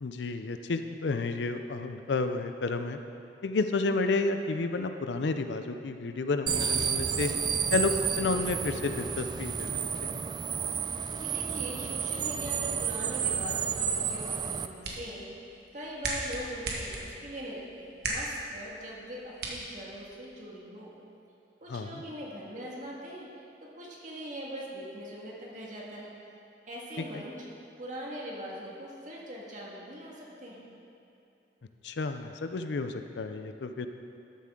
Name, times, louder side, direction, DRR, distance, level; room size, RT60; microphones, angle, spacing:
voice 1, 0.0-3.0 3.4-7.3 7.7-10.2 21.7-22.0 27.1-27.2 31.8-33.9, left 3 dB, 75° left, 8 dB, 0.5 m, -31 dB
sound 1, 6.5-14.7, right 7 dB, 25° right, 0.3 m, -31 dB
voice 2, 11.1-15.3 15.7-20.9 21.6-23.3 23.8-26.1 26.7-27.3 27.8-30.7, equal, 45° right, -4 dB, 1.8 m, -41 dB
sound 2, 14.5-20.4, right 2 dB, 60° right, 1.4 m, -39 dB
13.0 x 7.3 x 3.8 m, 2.7 s
head